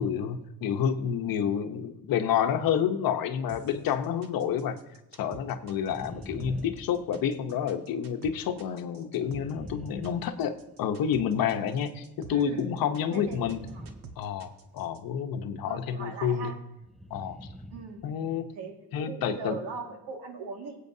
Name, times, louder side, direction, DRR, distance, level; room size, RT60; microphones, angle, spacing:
voice 1, 0.0-4.8 5.2-13.6 14.2-16.5 17.1-17.4 18.0-18.5 18.9-19.6, left 8 dB, 60° left, 8 dB, 0.9 m, -29 dB
sound 1, 3.5-15.0, right 5 dB, 60° right, 1.2 m, -48 dB
sound 2, 5.8-7.7 9.1-11.0 13.1-14.8 16.8-18.1 18.4-18.5, equal, ahead, 0.3 m, -45 dB
voice 2, 12.3-12.7 13.1-13.9 15.7-16.6 17.7-18.0 18.6-20.8, right 4 dB, 85° right, 3 dB, 2.0 m, -39 dB
22.5 x 8.3 x 2.7 m, 0.90 s
cardioid pair, 135°, 39 cm